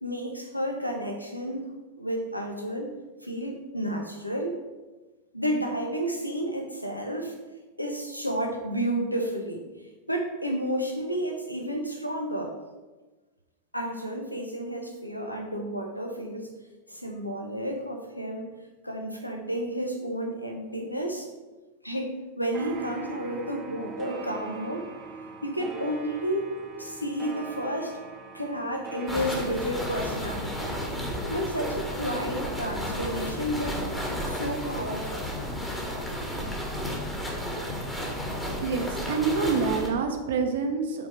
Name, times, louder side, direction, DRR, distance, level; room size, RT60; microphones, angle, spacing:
voice 1, 0.0-2.9 3.2-4.6 5.3-7.3 7.8-9.7 10.1-12.5 13.7-16.6 16.9-21.3 21.8-24.8 25.4-27.9 28.3-30.8 31.3-33.8 34.2-35.2, equal, 90° left, 2 dB, 0.8 m, -31 dB
sound 1, 22.5-37.6 38.0-39.4 39.7-39.8, right 4 dB, 25° right, 0.8 m, -44 dB
sound 2, 29.1-39.9, equal, 5° left, 1.2 m, -32 dB
voice 2, 38.6-41.1, right 5 dB, 60° right, 6 dB, 0.8 m, -27 dB
6.1 x 4.0 x 4.7 m, 1.2 s
figure-of-eight pair, 90°, 0 cm